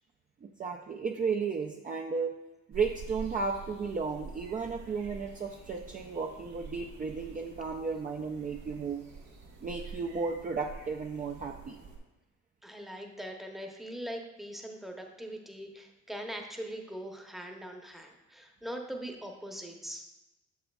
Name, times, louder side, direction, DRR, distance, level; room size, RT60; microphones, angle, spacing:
voice 1, 0.4-2.3 2.7-9.1 9.6-11.8, right 5 dB, 30° right, 1 dB, 0.4 m, -34 dB
sound 1, 2.7-12.0, right 4 dB, 65° right, 1.6 m, -47 dB
voice 2, 12.6-20.1, equal, ahead, 2 dB, 0.8 m, -41 dB
6.7 x 6.4 x 2.3 m, 1.0 s
cardioid pair, 90°, 30 cm